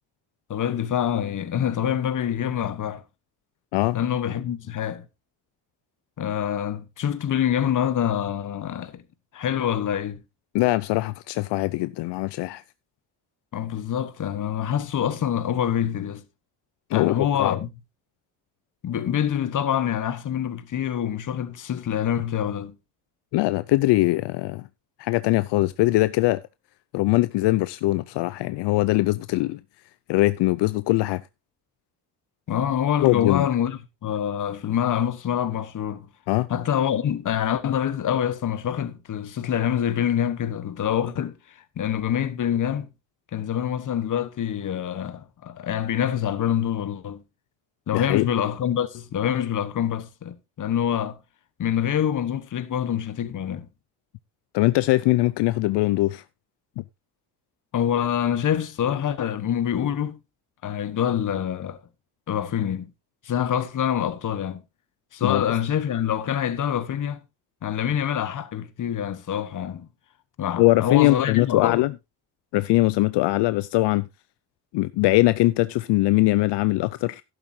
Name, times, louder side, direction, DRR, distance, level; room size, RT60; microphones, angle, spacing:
voice 1, 0.5-3.0 3.9-5.1 6.2-9.0 9.3-10.2 13.5-16.2 16.9-17.7 18.8-22.7 32.5-36.1 36.5-41.4 41.8-42.9 43.3-47.2 47.9-51.2 51.6-53.7 57.7-60.2 60.6-61.8 62.3-62.9 63.2-64.6 65.1-67.2 67.6-69.9 70.4-71.8, left 9 dB, 45° left, 1.2 m, -26 dB
voice 2, 10.5-12.6 16.9-17.5 23.3-24.6 25.0-26.4 26.9-29.6 30.1-31.2 33.0-33.5 36.3-36.5 47.9-48.3 54.5-56.2 56.8-56.9 65.2-65.4 70.6-71.9 72.5-74.1 74.7-77.2, left 19 dB, 80° left, 0.5 m, -21 dB
12.0 x 11.0 x 2.7 m
cardioid pair, 110°, 41 cm